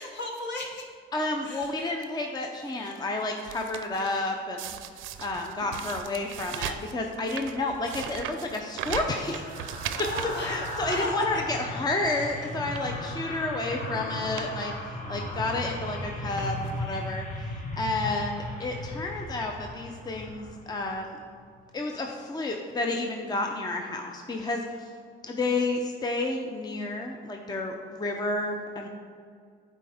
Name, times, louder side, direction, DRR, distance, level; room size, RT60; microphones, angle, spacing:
voice 1, 0.0-0.9 1.4-1.7 9.9-11.3, left 2 dB, 60° left, 1 dB, 1.2 m, -36 dB
voice 2, 1.1-4.7 5.2-9.4 10.2-21.2 21.7-24.9 25.2-28.9, left 2 dB, 20° left, 2 dB, 0.5 m, -31 dB
sound 1, 1.6-2.0 2.6-4.2 4.6-11.7 12.1-12.2 12.6-13.0 13.8-13.9 14.2-14.5 14.8-14.9 15.8-16.0 16.4-16.9 17.6-17.7 17.9-18.0, right 10 dB, 85° right, 0.4 m, -39 dB
sound 2, 7.7-21.0 21.4-21.6, left 1 dB, 35° left, 1.2 m, -37 dB
9.0 x 4.3 x 3.4 m, 2.1 s
cardioid pair, 90°, 20 cm